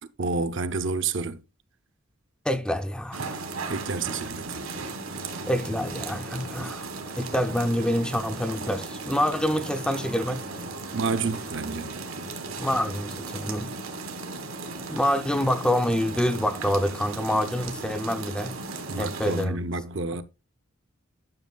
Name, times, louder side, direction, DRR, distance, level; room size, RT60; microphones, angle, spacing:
voice 1, 0.2-1.4 3.6-4.6 6.6-6.7 10.9-11.9 18.9-20.2, right 4 dB, 60° right, 0.7 m, -29 dB
voice 2, 2.4-3.4 5.5-6.8 7.2-10.4 12.6-13.7 14.9-18.5 19.0-19.6, equal, 5° left, 0.5 m, -26 dB
sound 1, 3.1-19.4, right 3 dB, 85° right, 1.7 m, -36 dB
10.5 x 6.2 x 2.3 m
head